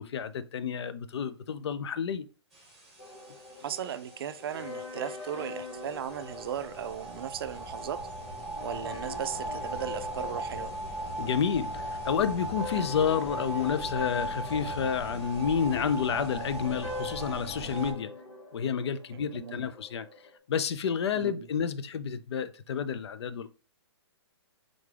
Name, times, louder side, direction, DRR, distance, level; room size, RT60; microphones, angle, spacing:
voice 1, 0.0-2.3 11.2-18.1 18.5-20.1 20.5-23.5, left 7 dB, 65° left, 0.4 m, -30 dB
sound 1, 2.5-17.9, right 1 dB, ahead, 1.1 m, -38 dB
sound 2, 3.0-20.4, left 3 dB, 85° left, 0.9 m, -44 dB
voice 2, 3.6-8.0 8.6-10.7 19.1-19.7 21.1-21.5, right 9 dB, 55° right, 0.4 m, -37 dB
3.9 x 3.5 x 3.3 m
hypercardioid pair, 160°, 15 cm